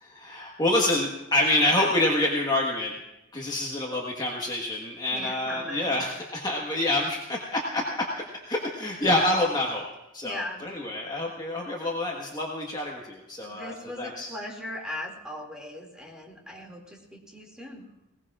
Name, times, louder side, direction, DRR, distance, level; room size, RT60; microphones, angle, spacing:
voice 1, 0.0-2.9 3.3-9.8 10.1-14.3, left 1 dB, 20° left, -2 dB, 1.5 m, -27 dB
voice 2, 5.1-5.9 10.2-10.7 13.4-17.8, left 1 dB, 5° right, -1 dB, 2.4 m, -39 dB
20.5 x 18.5 x 2.5 m, 0.92 s
head